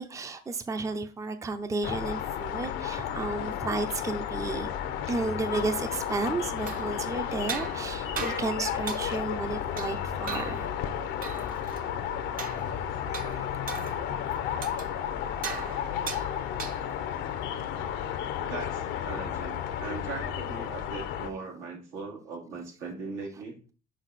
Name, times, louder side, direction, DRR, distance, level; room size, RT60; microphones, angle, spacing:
voice 1, 0.0-4.7 5.1-10.6, right 3 dB, 15° right, 0.5 m, -32 dB
sound 1, 1.8-21.3, left 9 dB, 75° left, 0.7 m, -33 dB
sound 2, 6.5-17.1, right 5 dB, 45° right, 0.9 m, -40 dB
voice 2, 18.5-23.5, right 4 dB, 85° right, 2.5 m, -39 dB
6.3 x 4.2 x 4.1 m
cardioid pair, 105°, 19 cm